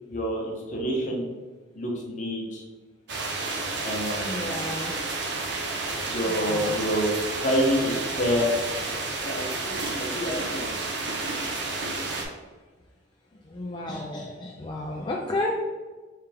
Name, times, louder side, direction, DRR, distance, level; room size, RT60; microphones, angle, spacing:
voice 1, 0.1-1.3 1.7-2.6 3.8-4.6 6.0-8.5 9.2-10.7, equal, 40° left, -1 dB, 0.9 m, -28 dB
sound 1, 3.1-12.2, right 3 dB, 60° right, 0.6 m, -31 dB
voice 2, 4.2-4.9 6.3-6.8 13.3-15.5, left 1 dB, 25° left, -2 dB, 0.3 m, -32 dB
3.4 x 3.3 x 3.4 m, 1.3 s
head